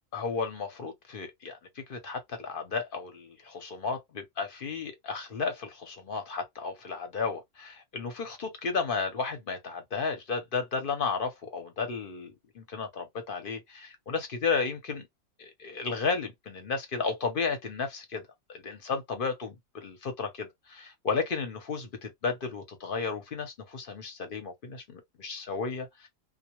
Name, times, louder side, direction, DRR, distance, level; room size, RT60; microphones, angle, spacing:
voice 1, 0.1-15.1 15.4-18.2 18.5-26.1, left 4 dB, 50° left, 0.7 m, -33 dB
2.2 x 2.1 x 2.9 m
omnidirectional pair, 1.4 m